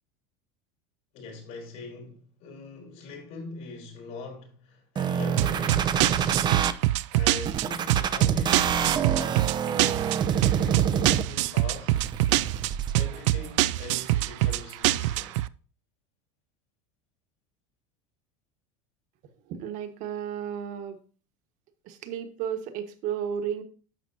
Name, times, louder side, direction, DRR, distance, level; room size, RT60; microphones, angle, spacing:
voice 1, 1.1-6.0 7.1-12.0 13.0-15.4, left 3 dB, 65° left, 5.1 m, -42 dB
sound 1, 5.0-6.7 7.5-11.5 12.0-12.9, right 8 dB, 30° right, 0.6 m, -27 dB
sound 2, 5.4-15.5, right 16 dB, 80° right, 0.4 m, -25 dB
voice 2, 19.5-21.0 21.8-23.6, right 8 dB, 55° right, 1.4 m, -33 dB
11.0 x 7.0 x 2.7 m
supercardioid pair, 120°, 16 cm